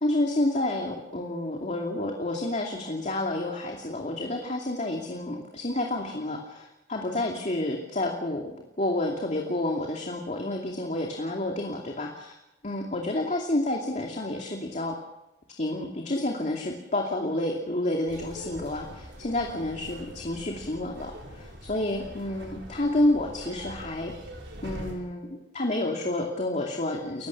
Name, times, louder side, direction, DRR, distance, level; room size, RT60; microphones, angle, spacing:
voice 1, 0.0-8.5 8.8-12.4 12.6-14.9 15.6-24.1 24.6-27.3, left 1 dB, 40° left, 1 dB, 2.6 m, -29 dB
sound 1, 18.1-24.9, equal, 70° right, 6.3 m, -43 dB
29.5 x 16.0 x 7.3 m, 0.93 s
head